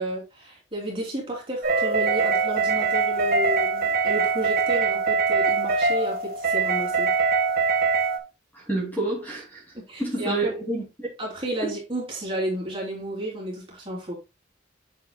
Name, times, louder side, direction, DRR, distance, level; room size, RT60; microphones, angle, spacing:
voice 1, 0.0-7.1 9.7-10.6 11.2-14.2, right 1 dB, 25° right, 3.1 m, -32 dB
sound 1, 1.6-8.2, right 4 dB, 50° right, 1.2 m, -23 dB
voice 2, 8.5-9.7 10.0-11.1 11.6-11.7, right 2 dB, 10° left, 2.5 m, -29 dB
7.9 x 7.3 x 2.2 m
head